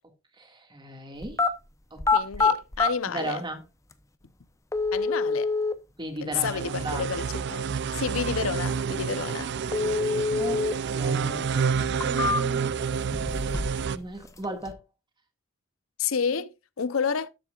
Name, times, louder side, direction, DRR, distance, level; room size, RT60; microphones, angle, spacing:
voice 1, 0.4-1.4 1.9-2.0 2.4-2.5 3.1-3.6 6.0-7.0 8.1-8.3 9.2-9.3 10.1-12.8 13.9-14.8, right 2 dB, 20° right, 1.9 m, -37 dB
sound 1, 1.2-1.5 2.0-2.9 3.9-4.0 4.7-5.7 9.7-10.7 11.1-11.2 11.8-12.7 13.1-13.9 14.1-14.7, left 4 dB, 15° left, 0.7 m, -25 dB
voice 2, 2.1-3.4 4.9-5.5 6.2-7.7 7.9-9.5 16.0-17.3, left 6 dB, 80° left, 0.7 m, -30 dB
sound 2, 6.3-14.0, right 6 dB, 60° right, 0.5 m, -29 dB
13.0 x 7.3 x 2.4 m
head